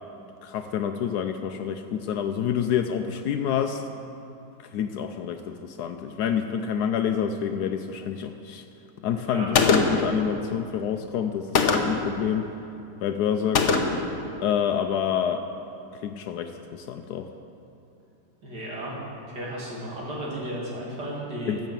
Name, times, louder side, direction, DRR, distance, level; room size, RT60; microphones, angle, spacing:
voice 1, 0.4-3.8 4.6-8.6 9.0-12.5 13.0-13.6 14.4-15.4 15.9-17.3 21.5-21.6, left 8 dB, 75° left, 7 dB, 1.1 m, -28 dB
Gunshot gunfire, 9.5-10.1 11.6-12.1 13.6-14.1, left 4 dB, 55° left, 1.0 m, -21 dB
voice 2, 18.4-21.6, right 1 dB, 80° right, -5 dB, 2.9 m, -34 dB
14.5 x 5.9 x 7.4 m, 2.8 s
omnidirectional pair, 1.8 m